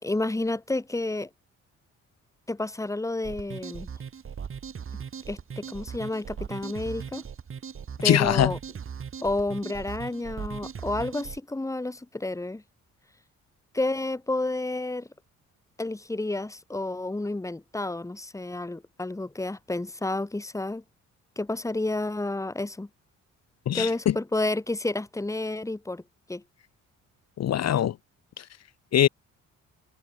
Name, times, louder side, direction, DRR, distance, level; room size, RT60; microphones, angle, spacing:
voice 1, 0.0-1.3 2.5-3.9 5.3-7.2 8.0-8.6 9.2-12.6 13.7-15.1 15.8-20.8 21.4-22.9 23.7-26.0 26.3-26.4, left 2 dB, 10° left, 2.0 m, -30 dB
sound 1, 3.2-11.4, right 7 dB, 45° right, 2.9 m, -39 dB
voice 2, 8.0-8.5 23.7-24.1 27.4-28.0 28.4-28.5 28.9-29.1, left 11 dB, 60° left, 1.1 m, -22 dB
cardioid pair, 90°, 30 cm